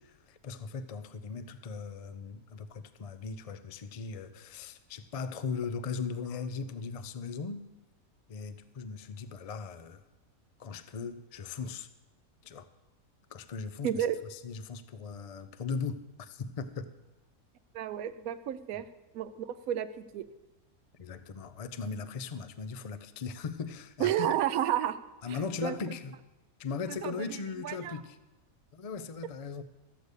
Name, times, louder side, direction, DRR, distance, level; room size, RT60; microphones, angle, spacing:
voice 1, 0.0-7.6 8.3-10.0 10.6-11.9 12.4-12.7 13.3-16.9 21.0-24.3 25.2-26.2 26.6-28.2 28.7-29.6, left 5 dB, 55° left, 0.4 m, -38 dB
voice 2, 13.8-14.2 17.7-18.8 19.1-20.2 24.0-25.0 25.6-25.7 27.0-27.1 27.6-28.0, right 11 dB, 80° right, 1.1 m, -31 dB
14.0 x 6.8 x 8.1 m
omnidirectional pair, 1.5 m